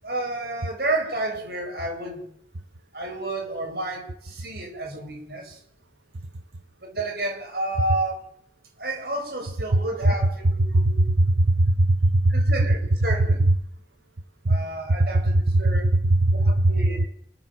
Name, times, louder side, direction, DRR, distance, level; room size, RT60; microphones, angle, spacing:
voice 1, 0.0-2.3 2.9-5.6 6.8-8.3 8.8-11.1 12.3-13.4 14.5-15.9 16.3-17.1, right 2 dB, 60° right, 3 dB, 7.9 m, -31 dB
voice 2, 10.7-12.3 14.4-14.6 15.6-16.7, right 1 dB, 80° right, 11 dB, 1.0 m, -20 dB
29.5 x 13.0 x 7.7 m, 0.67 s
head